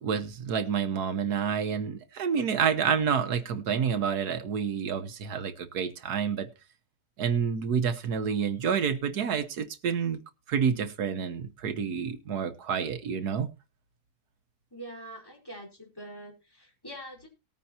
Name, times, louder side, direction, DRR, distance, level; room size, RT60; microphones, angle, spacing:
voice 1, 0.0-6.5 7.2-10.2 10.5-13.5, right 7 dB, 85° right, 8 dB, 1.7 m, -28 dB
voice 2, 14.7-17.3, right 1 dB, 15° left, -1 dB, 4.5 m, -44 dB
19.0 x 9.1 x 2.9 m, 0.28 s
omnidirectional pair, 1.6 m